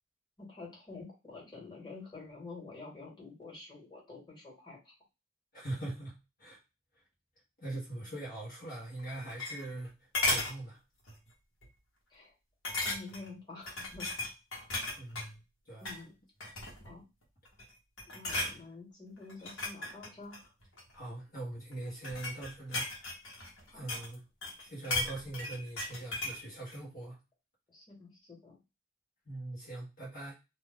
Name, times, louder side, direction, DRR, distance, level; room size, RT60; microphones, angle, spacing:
voice 1, 0.4-4.9 12.1-12.3 12.8-14.1 15.8-16.2 16.8-17.0 18.1-20.5 23.7-23.9 27.7-28.6, left 3 dB, 25° left, -5 dB, 1.5 m, -48 dB
voice 2, 5.5-6.6 7.6-10.8 15.0-15.4 15.6-15.9 18.2-18.4 20.9-22.9 23.7-24.2 24.6-27.2 29.3-30.3, right 2 dB, 45° left, -6 dB, 1.1 m, -42 dB
sound 1, 9.0-9.9 10.1-10.6 11.1-11.3 11.6-11.7 12.6-13.3 13.7-15.3 15.7-16.0 16.4-16.9 17.4-17.7 18.0-18.6 19.3-20.9 21.7-24.1 24.4-26.4 26.7-26.8, left 2 dB, 70° left, 1.1 m, -35 dB
2.6 x 2.3 x 3.4 m, 0.26 s
head